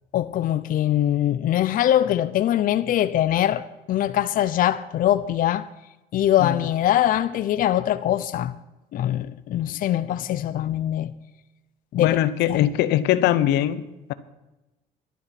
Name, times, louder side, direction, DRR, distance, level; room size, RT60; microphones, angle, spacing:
voice 1, 0.1-5.7 6.1-8.5 8.9-11.1 11.9-12.2 12.5-12.7, left 12 dB, 55° left, 0.6 m, -22 dB
voice 2, 12.0-14.1, left 12 dB, 85° left, 0.8 m, -21 dB
12.0 x 11.0 x 5.9 m
cardioid pair, 110°, 17 cm